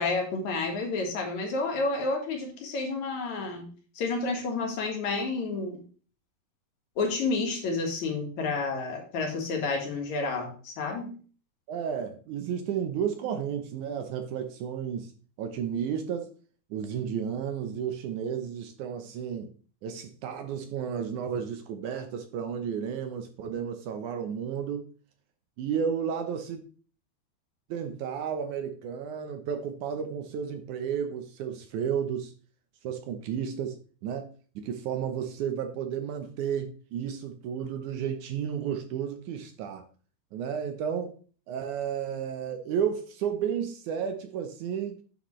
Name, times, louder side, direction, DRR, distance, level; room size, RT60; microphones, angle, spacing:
voice 1, 0.0-3.7 4.0-5.8 7.0-11.1, left 3 dB, 60° left, 2.8 m, -30 dB
voice 2, 11.7-15.1 15.4-16.3 16.7-19.5 19.8-24.9 25.6-26.6 27.7-32.3 32.8-33.8 34.0-34.3 34.6-39.8 40.3-41.2 41.5-45.0, right 8 dB, 70° right, 2.0 m, -32 dB
9.7 x 6.5 x 3.1 m
omnidirectional pair, 4.1 m